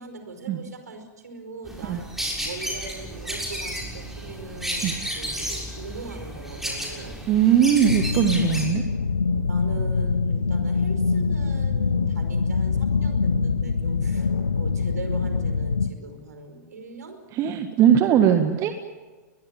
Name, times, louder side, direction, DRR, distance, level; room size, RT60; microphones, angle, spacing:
voice 1, 0.0-7.2 9.5-17.2, right 3 dB, 70° right, 8 dB, 5.1 m, -40 dB
sound 1, 1.6-8.6, equal, 5° right, 6.7 m, -32 dB
voice 2, 7.3-8.8 17.3-18.7, right 9 dB, 30° right, 8 dB, 1.7 m, -20 dB
sound 2, 7.9-15.9, left 4 dB, 80° left, 1.2 m, -24 dB
22.0 x 22.0 x 8.8 m, 1.3 s
figure-of-eight pair, 100°, 9 cm